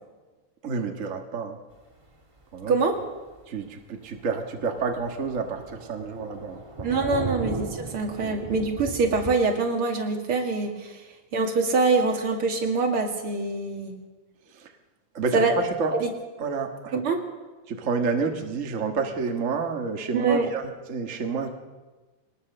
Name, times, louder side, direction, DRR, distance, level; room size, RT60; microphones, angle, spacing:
voice 1, 0.6-1.6 2.5-2.8 3.5-6.9 8.2-8.4 14.5-14.7 15.1-15.5 15.8-15.9 16.4-16.9 17.7-20.6 20.9-21.5, right 5 dB, 65° right, 4 dB, 0.7 m, -29 dB
Thunder, 2.4-2.5 2.9-3.0 3.4-3.5 3.8-3.9 4.1-9.3, right 3 dB, 15° right, 1.1 m, -36 dB
voice 2, 2.7-3.0 6.8-11.1 11.3-14.0 15.3-15.6 16.0-16.1 16.9-17.2 20.1-20.5, right 3 dB, 40° right, 2 dB, 2.8 m, -24 dB
22.0 x 19.5 x 6.7 m, 1.3 s
omnidirectional pair, 3.9 m